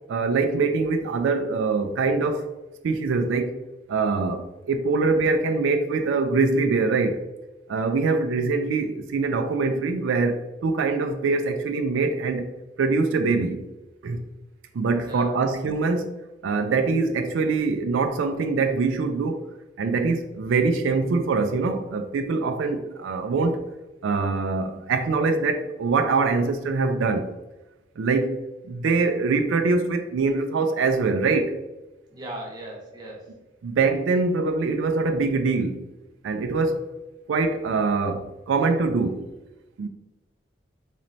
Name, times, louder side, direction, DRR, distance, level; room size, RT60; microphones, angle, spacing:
voice 1, 0.1-2.5 2.8-3.6 3.9-7.2 7.7-12.5 12.8-13.7 14.0-14.2 14.7-16.1 16.4-19.4 19.8-23.6 24.0-27.3 28.0-28.4 28.6-31.6 33.6-35.8 36.2-36.9 37.3-39.3 39.8-39.9, right 4 dB, 80° right, 0.3 m, -23 dB
voice 2, 15.1-15.4 32.1-33.3, right 1 dB, 20° right, 0.7 m, -37 dB
4.1 x 3.1 x 2.6 m
head